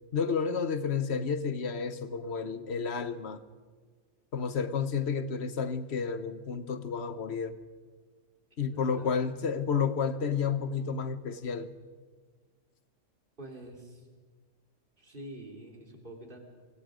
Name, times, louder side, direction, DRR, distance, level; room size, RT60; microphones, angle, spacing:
voice 1, 0.1-3.4 4.3-7.6 8.6-11.7, left 6 dB, 60° left, 1.3 m, -31 dB
voice 2, 8.7-9.1 13.4-14.0 15.0-16.4, right 1 dB, 40° right, 3.4 m, -46 dB
25.0 x 24.0 x 5.1 m
omnidirectional pair, 1.3 m